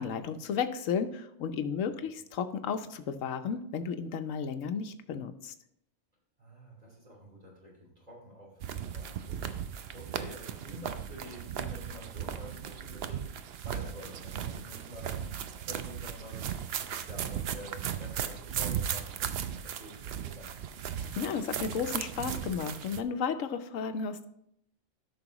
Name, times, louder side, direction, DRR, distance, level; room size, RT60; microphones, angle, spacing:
voice 1, 0.0-5.5 21.0-24.3, left 6 dB, 85° left, 9 dB, 1.1 m, -33 dB
voice 2, 6.4-15.3 15.6-16.6 17.1-20.5, equal, 30° right, -3 dB, 2.9 m, -48 dB
sound 1, 8.6-23.0, right 9 dB, 60° right, 0.7 m, -37 dB
13.0 x 6.0 x 3.0 m, 0.75 s
omnidirectional pair, 1.3 m